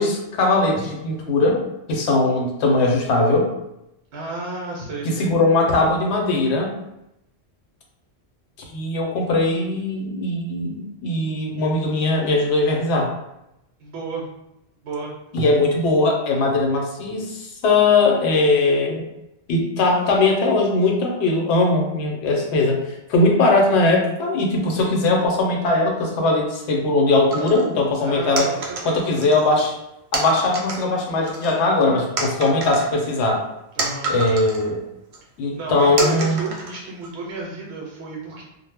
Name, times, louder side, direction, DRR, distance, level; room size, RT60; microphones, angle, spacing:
voice 1, 0.0-1.6 1.9-3.5 5.0-6.7 8.7-13.1 15.3-19.0 19.5-28.5 28.8-29.7 30.1-33.5 34.1-34.8 35.4-36.4, left 2 dB, 80° left, 1 dB, 0.9 m, -20 dB
voice 2, 4.1-5.3 13.8-14.3 14.8-15.1 28.0-29.3 33.7-34.1 35.6-38.4, right 3 dB, 70° right, -3 dB, 0.8 m, -32 dB
sound 1, 27.3-27.7 28.4-29.5 30.1-30.9 31.3-31.8 32.2-34.7 35.1-35.2 36.0-37.1, right 3 dB, 55° right, 0.3 m, -29 dB
2.0 x 2.0 x 3.3 m, 0.87 s
omnidirectional pair, 1.1 m